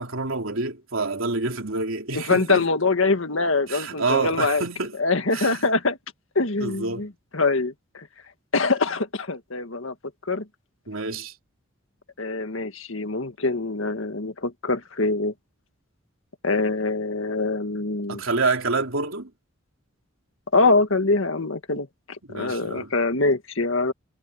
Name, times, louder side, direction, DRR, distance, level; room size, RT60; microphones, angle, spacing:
voice 1, 0.0-2.7 3.7-4.9 5.3-5.6 6.6-7.0 10.9-11.3 18.1-19.3 22.3-22.9, right 3 dB, 80° right, 3.3 m, -27 dB
voice 2, 2.1-4.6 5.0-6.0 6.4-8.1 8.5-9.9 10.3-10.5 12.2-15.3 16.4-18.2 20.5-23.9, left 3 dB, 75° left, 1.9 m, -24 dB
head